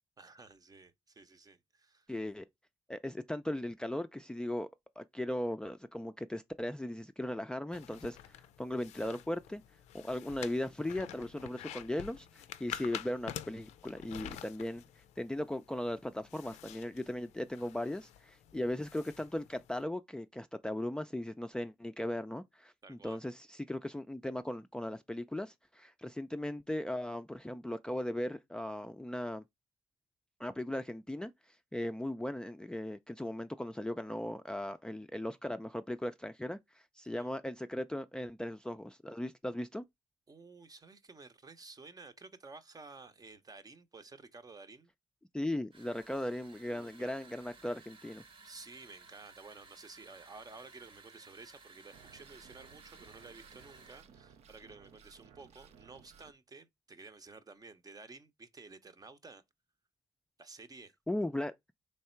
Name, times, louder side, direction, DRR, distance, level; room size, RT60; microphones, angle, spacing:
voice 1, 0.2-2.1 22.8-23.2 37.1-37.3 40.3-44.9 46.6-47.1 48.4-59.4 60.4-60.9, right 3 dB, 35° right, 0.8 m, -53 dB
voice 2, 2.1-2.5 2.9-4.7 5.0-9.6 9.9-29.4 30.4-31.3 31.7-39.8 45.3-48.2 61.1-61.5, left 1 dB, 5° left, 0.4 m, -38 dB
sound 1, 7.7-19.8, left 11 dB, 85° left, 0.4 m, -48 dB
sound 2, 45.7-54.1, right 4 dB, 50° right, 1.0 m, -58 dB
sound 3, 51.9-56.3, right 7 dB, 75° right, 0.5 m, -59 dB
3.5 x 3.2 x 4.4 m
supercardioid pair, 55°, 11 cm